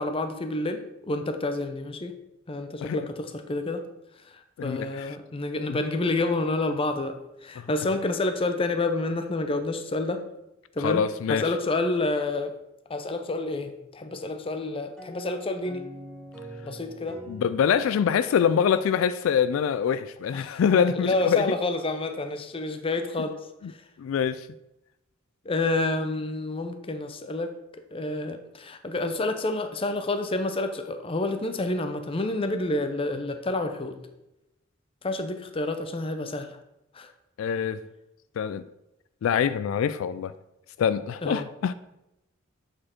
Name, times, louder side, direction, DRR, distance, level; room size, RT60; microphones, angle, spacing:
voice 1, 0.0-2.2 2.5-3.8 4.6-10.2 10.8-12.5 12.9-15.8 16.6-17.2 20.3-23.3 25.4-27.5 27.9-34.0 35.0-36.6 36.9-37.1 41.2-41.5, left 2 dB, 25° left, 0.5 m, -29 dB
voice 2, 4.6-5.1 5.7-5.8 10.8-11.4 17.3-21.5 24.0-24.5 37.4-37.8 38.4-38.6 39.2-40.3 40.8-41.7, left 7 dB, 80° left, 0.3 m, -24 dB
sound 1, 15.0-19.6, equal, 5° left, 1.0 m, -45 dB
7.4 x 4.3 x 4.4 m
head